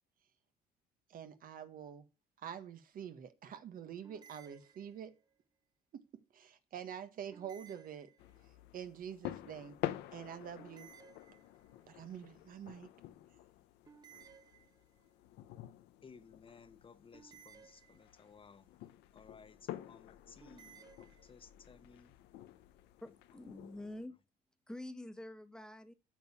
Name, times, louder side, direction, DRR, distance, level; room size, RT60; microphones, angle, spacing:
voice 1, 1.1-2.1 2.4-5.1 5.9-8.1 8.7-9.8 10.1-10.9 11.9-12.9, right 8 dB, 55° right, 1.4 m, -46 dB
sound 1, 4.0-5.3 7.3-8.6 10.6-11.9 13.9-15.2 17.1-18.4 20.4-21.3, right 7 dB, 25° right, 1.1 m, -60 dB
sound 2, 8.2-24.1, left 14 dB, 90° left, 1.0 m, -49 dB
voice 2, 16.0-22.2 23.0-23.4, left 5 dB, 30° left, 1.1 m, -59 dB
voice 3, 23.0-24.2 24.7-25.9, left 1 dB, 5° left, 1.4 m, -47 dB
9.1 x 6.9 x 7.2 m
cardioid pair, 110°, 17 cm